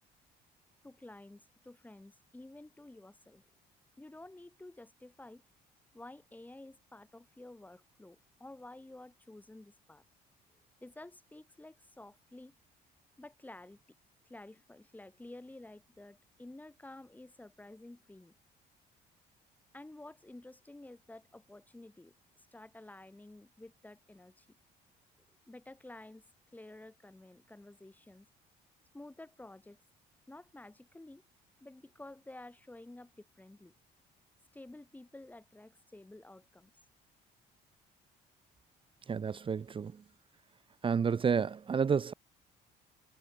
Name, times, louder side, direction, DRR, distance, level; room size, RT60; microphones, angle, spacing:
voice 1, 0.8-3.4 4.0-5.4 5.9-10.0 10.8-12.5 13.2-13.8 14.2-18.3 19.7-24.6 25.5-26.2 26.5-28.3 28.9-29.8 30.3-31.2 31.6-33.7 34.5-36.7, left 2 dB, 10° left, 3.2 m, -52 dB
voice 2, 39.1-40.0 40.8-42.1, right 6 dB, 30° right, 1.0 m, -30 dB
cardioid pair, 110°, 17 cm